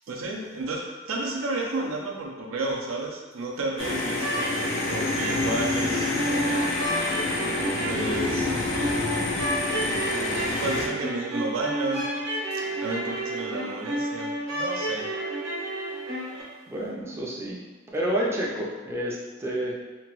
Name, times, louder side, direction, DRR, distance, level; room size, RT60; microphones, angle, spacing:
voice 1, 0.1-4.3 4.8-6.7 7.9-8.5 10.5-12.0 12.5-15.1, right 2 dB, 85° right, 0 dB, 0.5 m, -32 dB
sound 1, 3.8-10.9, left 2 dB, 75° left, 0.5 m, -27 dB
sound 2, 4.2-16.4, right 1 dB, 65° right, 0.8 m, -31 dB
voice 2, 16.7-17.6 17.9-19.8, right 1 dB, 15° right, -4 dB, 0.4 m, -29 dB
2.8 x 2.2 x 3.0 m, 1.4 s
head